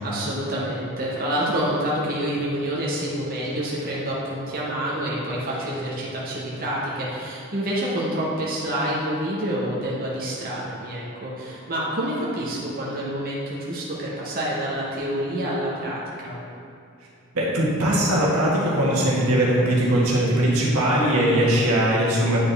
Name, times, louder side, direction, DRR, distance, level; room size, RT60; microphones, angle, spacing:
voice 1, 0.0-16.4, right 1 dB, 40° right, -6 dB, 1.0 m, -27 dB
voice 2, 17.3-22.4, right 1 dB, 85° right, -5 dB, 1.5 m, -20 dB
9.0 x 4.3 x 3.4 m, 2.5 s
head